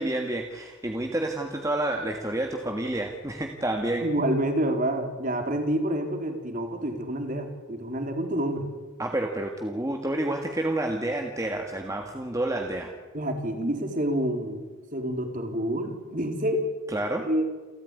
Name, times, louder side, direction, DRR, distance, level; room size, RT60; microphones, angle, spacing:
voice 1, 0.0-4.0 9.0-12.9 16.9-17.3, right 1 dB, 15° right, 3 dB, 1.7 m, -29 dB
voice 2, 4.0-8.7 13.1-14.6 14.9-16.6 17.2-17.4, right 1 dB, 35° right, 5 dB, 3.3 m, -28 dB
28.5 x 14.0 x 9.6 m, 1.3 s
head